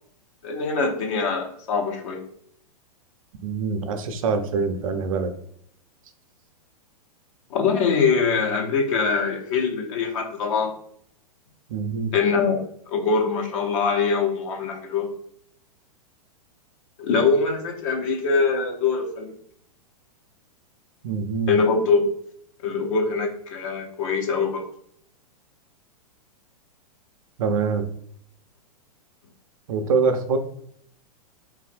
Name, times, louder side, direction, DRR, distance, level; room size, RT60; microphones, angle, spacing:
voice 1, 0.4-2.2 7.5-10.7 12.1-12.6 12.9-15.1 17.0-19.3 21.5-22.1 22.6-24.6, left 5 dB, 55° left, 1 dB, 0.8 m, -23 dB
voice 2, 3.4-5.3 11.7-12.1 21.0-21.6 27.4-27.9 29.7-30.4, right 5 dB, 60° right, 7 dB, 0.5 m, -24 dB
3.1 x 2.5 x 2.5 m, 0.66 s
hypercardioid pair, 110°, 20 cm